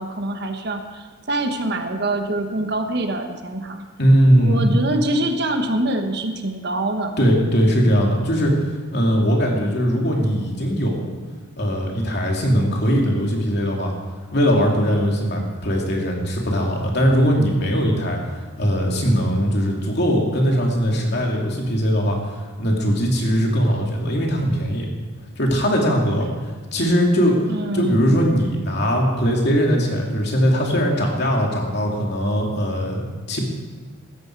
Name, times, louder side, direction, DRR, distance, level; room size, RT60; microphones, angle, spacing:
voice 1, 0.0-3.8 4.4-7.1 27.5-28.2, right 1 dB, 50° right, 5 dB, 1.3 m, -25 dB
voice 2, 4.0-4.7 7.2-11.1 11.6-13.9 14.3-18.2 18.6-24.9 25.4-26.3 26.7-27.4 27.7-33.4, equal, 50° left, -1 dB, 2.9 m, -20 dB
16.0 x 13.0 x 4.7 m, 1.4 s
head